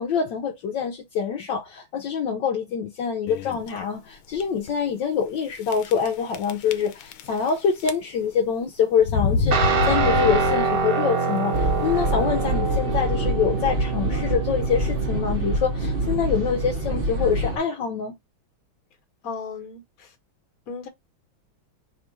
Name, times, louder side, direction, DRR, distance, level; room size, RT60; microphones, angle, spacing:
voice 1, 0.0-18.2, left 7 dB, 70° left, 1.3 m, -25 dB
sound 1, 3.3-3.7 4.3-4.4 4.7-4.8 5.7-6.1 6.3-7.5 7.8-8.3 9.0-11.0, left 4 dB, 85° left, 1.4 m, -26 dB
Guitar, 9.5-17.7, right 5 dB, 65° right, 0.5 m, -26 dB
sound 2, 11.5-17.6, right 1 dB, 40° right, 0.9 m, -26 dB
voice 2, 19.2-20.1 20.7-20.9, left 5 dB, 50° left, 1.5 m, -35 dB
3.6 x 2.4 x 4.4 m
omnidirectional pair, 2.2 m